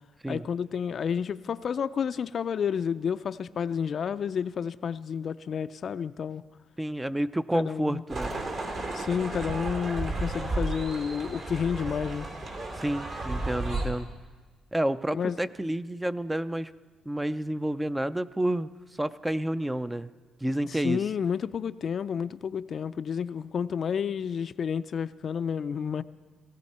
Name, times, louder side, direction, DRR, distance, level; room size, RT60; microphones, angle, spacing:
voice 1, 0.3-6.4 7.5-8.0 8.9-12.3 15.1-15.4 20.7-26.0, left 7 dB, 55° left, 13 dB, 0.4 m, -30 dB
voice 2, 6.8-8.3 12.7-14.1 14.7-16.7 17.1-20.1 20.4-21.0, right 1 dB, 10° right, 13 dB, 0.4 m, -29 dB
sound 1, 8.1-13.9, right 2 dB, 55° right, 2.5 m, -33 dB
18.0 x 16.5 x 4.2 m, 1.4 s
cardioid pair, 90°, 0 cm